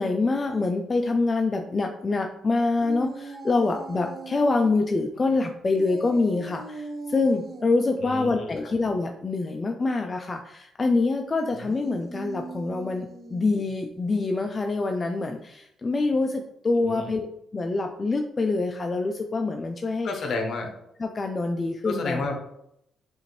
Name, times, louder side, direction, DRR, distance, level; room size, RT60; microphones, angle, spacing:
voice 1, 0.0-17.3 17.5-20.1 21.0-22.3, left 3 dB, 30° left, 4 dB, 0.3 m, -25 dB
sound 1, 2.8-4.7 5.8-7.7 11.5-13.8, right 3 dB, 50° right, 0.6 m, -40 dB
voice 2, 8.0-8.7 16.7-17.1 20.0-20.7 21.8-22.4, left 3 dB, 60° left, 3 dB, 0.9 m, -31 dB
5.4 x 2.5 x 3.1 m, 0.78 s
cardioid pair, 90°, 0 cm